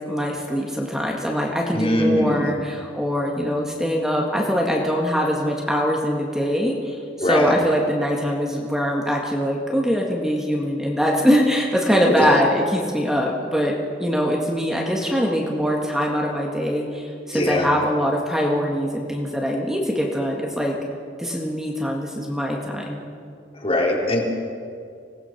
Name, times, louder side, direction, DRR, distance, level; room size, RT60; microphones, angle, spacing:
voice 1, 0.1-20.8 21.2-23.0, equal, 5° right, -1 dB, 1.8 m, -23 dB
voice 2, 1.7-2.5 7.2-7.5 12.2-12.4 17.3-17.7 23.6-24.2, left 1 dB, 30° left, 0 dB, 3.3 m, -21 dB
25.5 x 18.0 x 5.9 m, 2.4 s
head